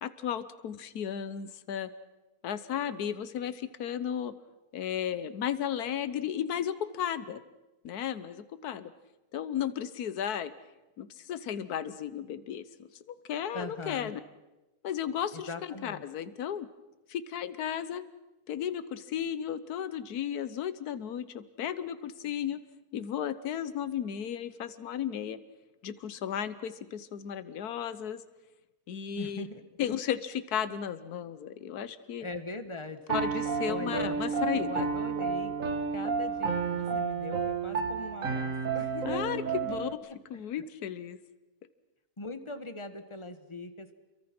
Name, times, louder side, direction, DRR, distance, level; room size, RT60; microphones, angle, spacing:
voice 1, 0.0-1.9 2.4-4.3 4.7-7.4 7.8-8.9 9.3-10.5 11.0-12.7 13.1-14.2 14.8-16.7 17.1-18.0 18.5-22.6 22.9-25.4 25.8-28.2 28.9-29.4 29.8-32.3 33.1-34.9 39.0-39.9 40.3-41.2, left 9 dB, 80° left, 13 dB, 1.5 m, -34 dB
voice 2, 13.5-14.1 15.3-16.0 29.1-29.6 32.2-33.0 33.7-35.6 35.9-39.4 40.1-40.6 42.2-43.9, left 2 dB, 20° left, 9 dB, 1.3 m, -41 dB
Piano, 33.1-39.9, right 5 dB, 60° right, 1.7 m, -31 dB
28.5 x 23.0 x 6.0 m, 1.1 s
omnidirectional pair, 1.6 m